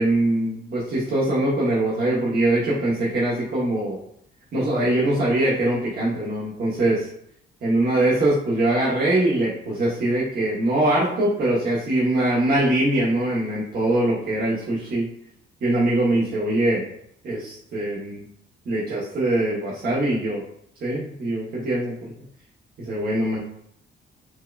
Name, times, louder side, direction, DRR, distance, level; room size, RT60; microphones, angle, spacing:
voice 1, 0.0-4.0 4.5-7.1 7.6-15.1 15.6-16.9 17.2-18.2 18.7-20.4 20.8-22.1 22.8-23.4, right 1 dB, 50° right, -7 dB, 0.9 m, -22 dB
4.5 x 2.2 x 2.3 m, 0.70 s
cardioid pair, 90°, 20 cm